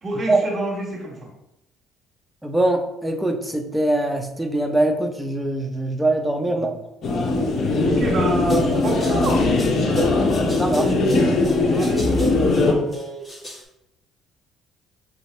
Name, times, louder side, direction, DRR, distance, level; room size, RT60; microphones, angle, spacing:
voice 1, 0.0-1.3 6.4-6.7 7.8-9.4 11.6-12.8, right 1 dB, 35° right, -2 dB, 1.6 m, -27 dB
voice 2, 2.4-6.7 10.6-10.9, right 1 dB, 5° right, 3 dB, 0.7 m, -22 dB
sound 1, 7.0-12.7, left 2 dB, 55° left, 0.7 m, -20 dB
sound 2, 8.5-13.6, right 2 dB, 20° left, 1.4 m, -32 dB
5.9 x 2.7 x 3.2 m, 0.87 s
supercardioid pair, 80°, 0 cm